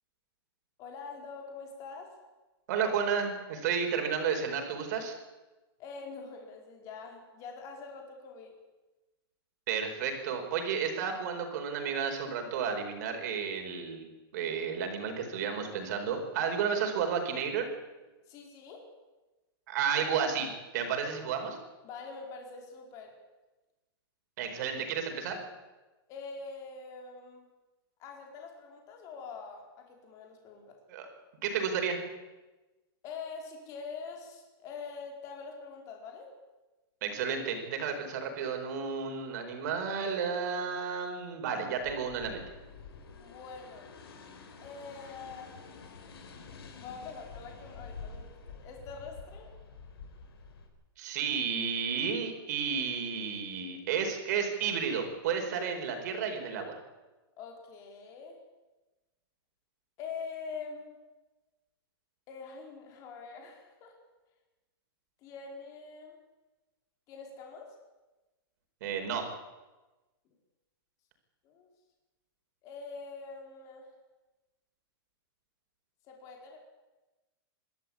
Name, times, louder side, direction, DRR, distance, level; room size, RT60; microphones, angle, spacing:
voice 1, 0.8-2.2 5.8-8.5 18.3-18.9 21.8-23.1 26.1-27.4 28.0-30.8 33.0-36.3 43.2-44.1 44.6-45.6 46.8-49.5 57.4-58.4 60.0-60.9 62.3-64.0 65.2-66.2 67.1-67.7 70.2-70.3 71.4-71.7 72.6-73.9 76.1-76.6, left 5 dB, 25° left, 1 dB, 4.5 m, -44 dB
voice 2, 2.7-5.1 9.7-14.0 14.3-17.7 19.7-20.5 20.7-21.6 24.4-25.4 30.9-31.1 31.4-32.0 37.0-42.4 51.0-56.7 68.8-69.3, right 6 dB, 45° right, 4 dB, 4.7 m, -32 dB
sound 1, 41.7-50.7, left 4 dB, 80° left, 5.0 m, -48 dB
26.5 x 13.0 x 8.7 m, 1.1 s
supercardioid pair, 170°, 13 cm